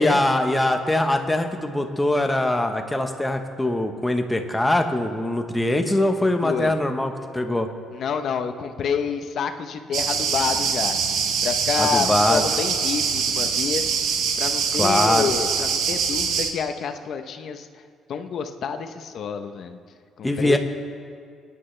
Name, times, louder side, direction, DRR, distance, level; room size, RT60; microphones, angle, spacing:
voice 1, 0.0-7.7 11.8-12.4 14.7-15.3 20.2-20.6, left 1 dB, 10° left, 5 dB, 1.0 m, -22 dB
voice 2, 6.4-6.7 7.9-11.0 11.4-14.0 14.4-17.7 18.1-19.8 20.2-20.6, left 6 dB, 55° left, 8 dB, 0.8 m, -28 dB
sound 1, 9.9-16.5, right 6 dB, 75° right, 1.3 m, -24 dB
24.0 x 10.5 x 3.3 m, 2.2 s
cardioid pair, 140°, 0 cm